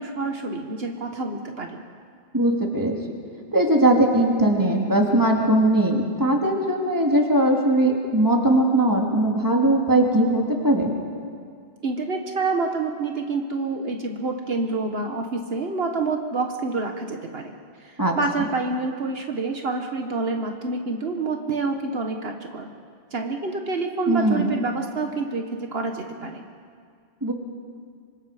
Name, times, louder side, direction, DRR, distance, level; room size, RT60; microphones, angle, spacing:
voice 1, 0.0-1.8 11.8-17.5 17.8-22.7 23.1-26.4, right 3 dB, 70° right, 3 dB, 1.6 m, -28 dB
voice 2, 2.3-3.0 3.5-10.9 18.0-18.1 24.1-24.6 27.2-27.3, right 1 dB, 20° right, 0 dB, 2.6 m, -20 dB
26.0 x 25.5 x 5.0 m, 2.2 s
omnidirectional pair, 1.1 m